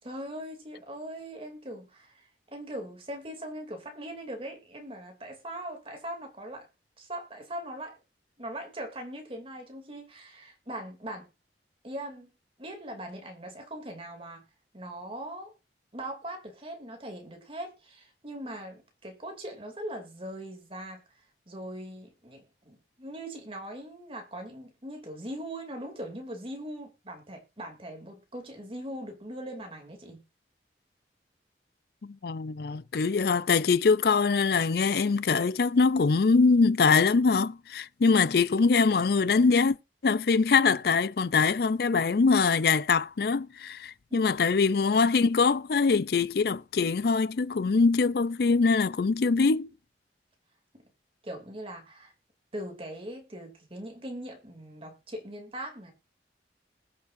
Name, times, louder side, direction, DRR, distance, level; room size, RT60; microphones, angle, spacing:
voice 1, 0.0-6.7 7.0-8.0 8.4-11.3 11.8-12.3 12.6-14.4 14.7-15.5 15.9-30.2 44.1-44.6 50.7-50.8 51.2-52.1 52.5-55.9, right 1 dB, 30° right, 2.8 m, -40 dB
voice 2, 32.0-39.8 40.0-49.7, left 4 dB, 60° left, 0.5 m, -23 dB
20.5 x 6.9 x 2.6 m
head